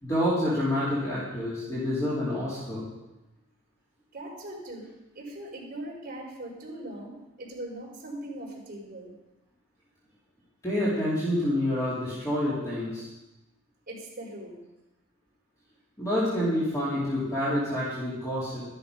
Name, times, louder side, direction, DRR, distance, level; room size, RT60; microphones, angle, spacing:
voice 1, 0.0-2.8 10.6-13.1 16.0-18.7, left 1 dB, 15° left, -9 dB, 4.0 m, -28 dB
voice 2, 4.1-4.9 5.1-9.1 13.9-14.6, right 1 dB, 45° right, -4 dB, 5.1 m, -40 dB
13.5 x 11.0 x 5.5 m, 0.98 s
head